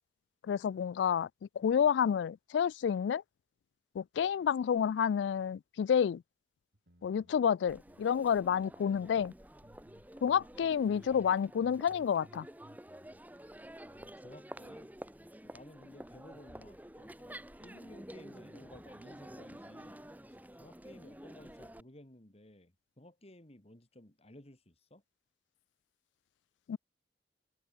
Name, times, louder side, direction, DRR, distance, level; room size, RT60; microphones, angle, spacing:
voice 1, 0.4-1.3 1.6-3.2 4.0-6.2 7.0-9.3 10.2-12.5 26.7-26.8, left 8 dB, 85° left, 0.3 m, -29 dB
sound 1, 6.7-9.3 9.6-11.4 11.6-13.2, equal, 70° right, 3.9 m, -61 dB
Crowd, 7.7-21.8, right 1 dB, 10° right, 2.7 m, -50 dB
voice 2, 13.8-14.9 15.4-25.0, left 1 dB, 35° left, 2.4 m, -56 dB
head